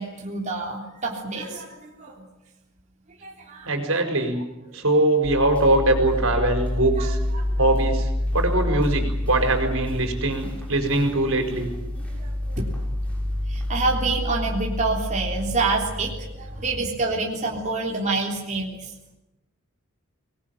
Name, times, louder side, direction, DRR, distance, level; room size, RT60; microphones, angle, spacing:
voice 1, 0.0-2.2 3.2-4.0 7.0-7.5 12.0-12.7 13.5-18.9, right 3 dB, 35° right, -1 dB, 3.5 m, -28 dB
voice 2, 3.6-4.4 4.7-7.2 7.6-11.7, right 2 dB, 75° right, 6 dB, 5.1 m, -22 dB
sound 1, 5.2-16.8, left 1 dB, 5° left, 7.5 m, -28 dB
25.0 x 20.5 x 9.2 m, 0.96 s
head